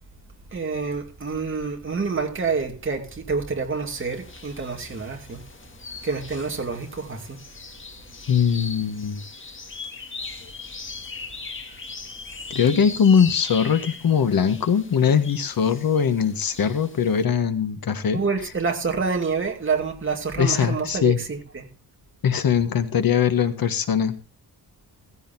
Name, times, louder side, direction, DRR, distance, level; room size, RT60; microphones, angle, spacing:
voice 1, 0.5-5.4 6.0-7.4 18.1-21.7, right 4 dB, 30° right, 2.5 m, -27 dB
sound 1, 3.9-17.2, left 4 dB, 30° left, 1.7 m, -40 dB
voice 2, 8.3-9.2 12.5-18.2 20.4-21.2 22.2-24.2, left 7 dB, 60° left, 1.5 m, -21 dB
16.0 x 15.0 x 2.7 m
wide cardioid pair, 165°, 39 cm